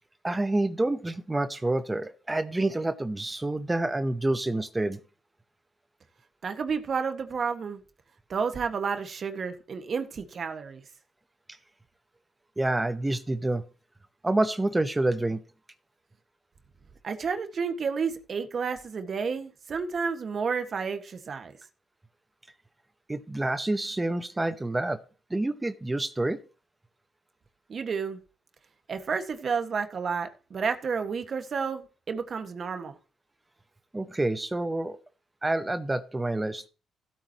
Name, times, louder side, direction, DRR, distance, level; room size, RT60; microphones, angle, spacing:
voice 1, 0.2-5.0 12.6-13.6 14.2-15.4 23.1-25.0 25.3-26.4 33.9-35.0 35.4-36.6, right 2 dB, 15° right, 11 dB, 0.8 m, -28 dB
voice 2, 6.4-7.8 8.3-10.8 17.0-21.5 27.7-28.2 28.9-32.9, right 5 dB, 50° right, 8 dB, 1.6 m, -31 dB
15.5 x 9.0 x 3.0 m, 0.35 s
cardioid pair, 90°, 0 cm